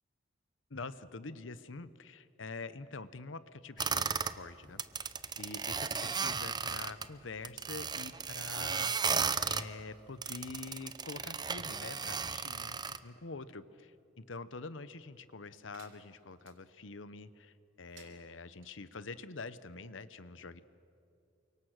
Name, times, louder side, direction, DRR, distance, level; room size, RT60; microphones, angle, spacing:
voice 1, 0.7-5.1 5.4-20.6, left 3 dB, 85° left, 14 dB, 1.0 m, -46 dB
sound 1, 3.8-4.4 4.7-7.0 7.4-9.7 10.2-13.0, right 6 dB, 25° right, 0.6 m, -35 dB
sound 2, 15.7-16.6 17.8-18.7, right 6 dB, 85° right, 3.2 m, -60 dB
29.0 x 24.5 x 6.5 m, 2.6 s
head